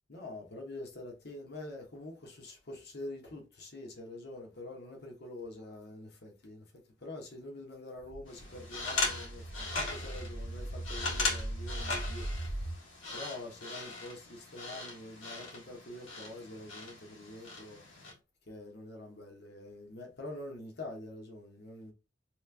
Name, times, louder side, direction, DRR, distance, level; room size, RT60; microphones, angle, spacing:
voice 1, 0.1-12.7 13.1-18.1 18.5-21.9, left 2 dB, 55° left, 1.1 m, -46 dB
sound 1, 8.0-12.7, right 1 dB, 35° left, 1.2 m, -39 dB
sound 2, 8.3-18.1, left 3 dB, 70° left, 1.6 m, -39 dB
3.1 x 3.1 x 3.4 m
head